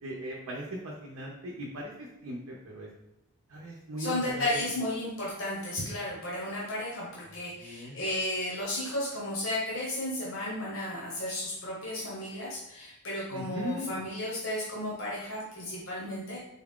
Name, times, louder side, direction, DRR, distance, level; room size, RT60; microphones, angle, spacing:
voice 1, 0.0-2.9 3.5-4.7 7.6-8.0 13.3-14.0, equal, 70° right, -2 dB, 0.6 m, -38 dB
voice 2, 4.0-16.5, left 1 dB, 60° left, -5 dB, 1.0 m, -33 dB
4.0 x 2.4 x 3.6 m, 0.88 s
head